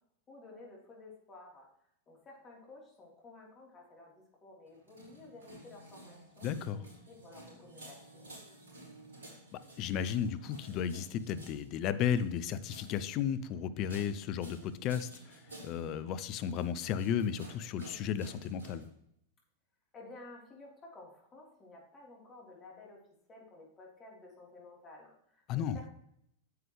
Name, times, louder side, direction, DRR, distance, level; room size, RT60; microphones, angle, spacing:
voice 1, 0.3-1.7 2.1-8.4 19.9-23.0 23.3-25.9, left 2 dB, 25° left, -2 dB, 3.5 m, -53 dB
sound 1, 4.7-18.8, right 1 dB, 75° right, 3.7 m, -53 dB
voice 2, 6.4-6.8 9.5-18.9 25.5-25.8, left 8 dB, 40° left, 14 dB, 0.6 m, -34 dB
9.6 x 7.8 x 3.2 m, 0.74 s
figure-of-eight pair, 95°, 0 cm